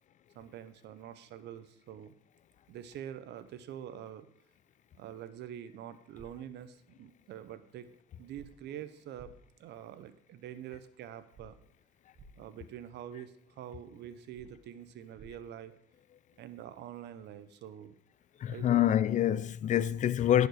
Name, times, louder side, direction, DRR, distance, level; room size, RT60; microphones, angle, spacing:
voice 1, 0.3-2.1 2.7-4.3 4.9-7.9 8.2-9.3 9.6-11.6 12.4-15.7 16.4-18.0 18.5-18.9, right 10 dB, 65° right, 0.8 m, -45 dB
sound 1, 6.1-6.3 8.3-8.5 9.1-9.3 11.3-11.5 12.1-12.3 14.3-14.5 15.1-15.3, right 4 dB, 40° right, 1.4 m, -53 dB
voice 2, 18.4-20.5, left 11 dB, 40° left, 0.4 m, -26 dB
10.5 x 5.1 x 4.8 m
cardioid pair, 95°, 19 cm